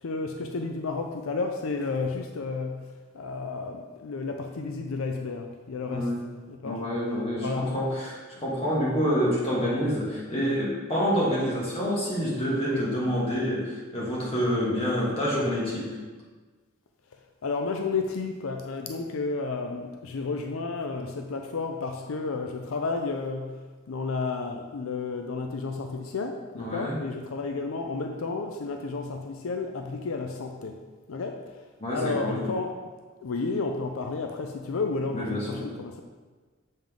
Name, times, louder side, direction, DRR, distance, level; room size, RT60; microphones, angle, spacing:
voice 1, 0.0-6.2 6.5-6.8 7.4-7.8 12.7-12.9 17.4-30.8 31.1-31.6 31.9-32.7 33.2-36.0, left 4 dB, 85° left, 4 dB, 0.5 m, -32 dB
voice 2, 6.6-16.0 26.5-27.0 31.8-32.4 35.1-35.6, equal, 30° left, -6 dB, 2.0 m, -27 dB
7.3 x 5.3 x 3.8 m, 1.4 s
head